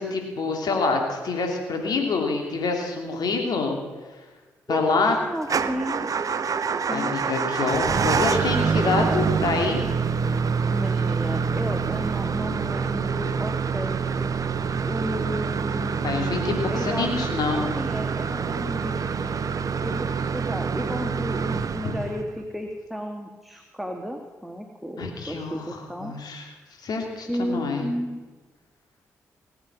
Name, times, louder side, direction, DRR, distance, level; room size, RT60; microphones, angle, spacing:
voice 1, 0.0-3.8 4.7-5.2 6.9-9.8 16.0-17.7 21.8-22.0 25.0-26.5 26.8-27.9, left 4 dB, 65° left, 3 dB, 2.9 m, -26 dB
voice 2, 4.7-6.1 6.9-7.1 10.7-14.3 14.9-16.4 16.7-17.1 17.7-19.4 19.8-26.1 27.2-28.2, equal, ahead, 3 dB, 1.6 m, -33 dB
Motor vehicle (road) / Engine starting / Idling, 5.4-22.4, right 6 dB, 50° right, 0.8 m, -26 dB
18.5 x 8.0 x 6.0 m, 1.3 s
hypercardioid pair, 40°, 7 cm